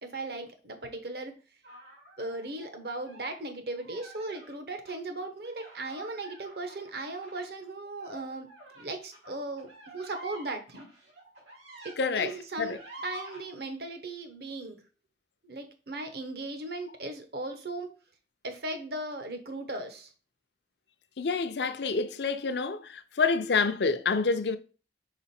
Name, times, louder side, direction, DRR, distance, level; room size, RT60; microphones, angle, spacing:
voice 1, 0.0-1.3 2.2-8.5 8.8-10.9 11.8-14.8 15.4-17.9 18.4-20.1, right 2 dB, 55° right, 1.0 m, -37 dB
sound 1, 1.6-3.3 3.7-4.5 4.9-5.0 5.4-12.0 12.3-13.4, right 1 dB, 80° right, 2.8 m, -48 dB
voice 2, 12.0-12.3 12.6-12.8 21.2-24.6, left 4 dB, 65° left, 0.5 m, -27 dB
5.0 x 4.5 x 4.3 m
head